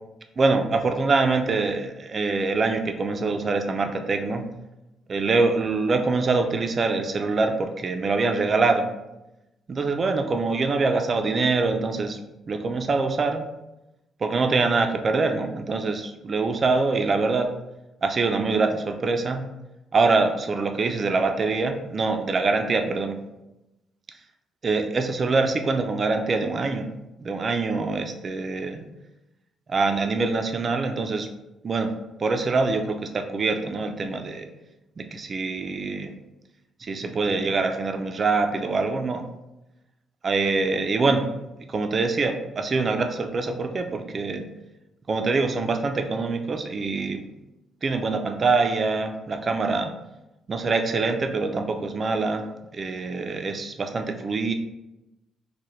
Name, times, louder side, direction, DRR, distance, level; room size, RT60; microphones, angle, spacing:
voice 1, 0.4-4.4 5.1-8.9 9.7-12.2 12.5-13.4 14.2-17.5 18.0-19.5 19.9-23.2 24.6-26.9 27.2-28.8 29.7-31.3 31.6-31.9 32.2-34.5 35.0-36.1 36.8-39.2 40.2-41.3 41.7-44.5 45.1-47.2 47.8-49.9 50.5-52.4 52.7-54.5, right 3 dB, 40° right, 6 dB, 0.4 m, -24 dB
4.6 x 2.2 x 3.1 m, 0.96 s
cardioid pair, 90°, 0 cm